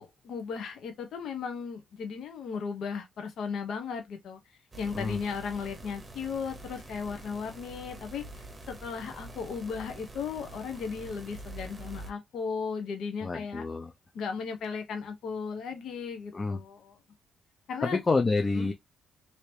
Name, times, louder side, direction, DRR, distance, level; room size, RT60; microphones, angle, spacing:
voice 1, 0.0-4.4 4.8-13.7 14.1-17.0 17.7-18.0 18.5-18.7, left 5 dB, 70° left, 0.9 m, -36 dB
sound 1, 4.7-12.1, right 2 dB, 20° right, 0.8 m, -45 dB
voice 2, 13.2-13.9 16.3-16.6 17.8-18.7, left 3 dB, 30° left, 0.6 m, -28 dB
2.9 x 2.8 x 3.2 m
cardioid pair, 90°, 0 cm